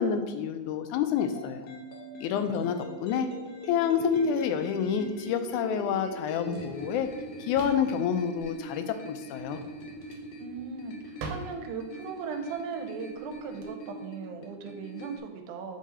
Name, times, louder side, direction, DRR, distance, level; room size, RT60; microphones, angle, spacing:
voice 1, 0.0-1.7 2.2-3.3 3.7-7.1 7.4-9.6, left 7 dB, 85° left, 8 dB, 2.0 m, -28 dB
sound 1, 1.2-15.2, equal, 65° left, 1.7 m, -42 dB
Drawer open or close, 4.1-13.7, right 3 dB, 75° right, 1.9 m, -46 dB
voice 2, 10.4-15.8, right 6 dB, 90° right, 5 dB, 2.1 m, -38 dB
7.5 x 3.7 x 4.2 m, 1.2 s
omnidirectional pair, 3.5 m